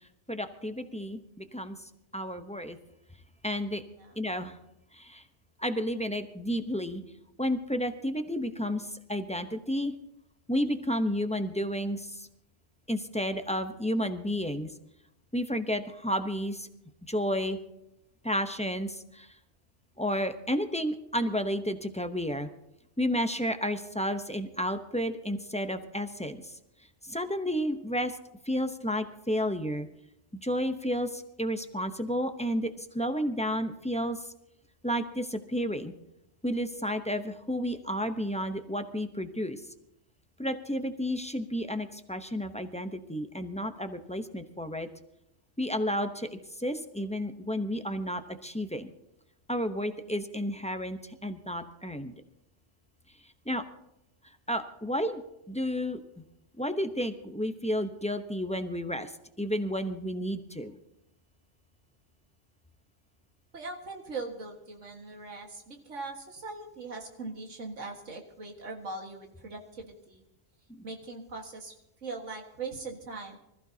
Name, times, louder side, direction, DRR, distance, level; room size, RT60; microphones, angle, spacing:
voice 1, 0.3-1.8 2.1-2.8 3.4-3.8 4.2-4.5 5.1-5.2 5.6-7.0 7.4-8.8 9.1-9.9 10.5-12.1 12.9-14.7 15.3-16.7 17.1-17.6 18.2-19.0 20.0-22.5 23.0-26.4 27.1-28.1 28.5-29.9 30.4-32.7 32.9-34.2 34.8-35.9 36.4-39.6 40.4-44.9 45.6-46.3 46.6-48.9 49.5-52.1 53.5-53.6 54.5-55.2 55.5-56.0 56.6-59.1 59.4-60.7, equal, 5° left, 7 dB, 0.6 m, -31 dB
voice 2, 63.5-70.2 70.8-71.8 72.0-73.4, right 3 dB, 85° right, 1 dB, 2.1 m, -40 dB
25.0 x 14.5 x 2.8 m, 0.86 s
omnidirectional pair, 1.2 m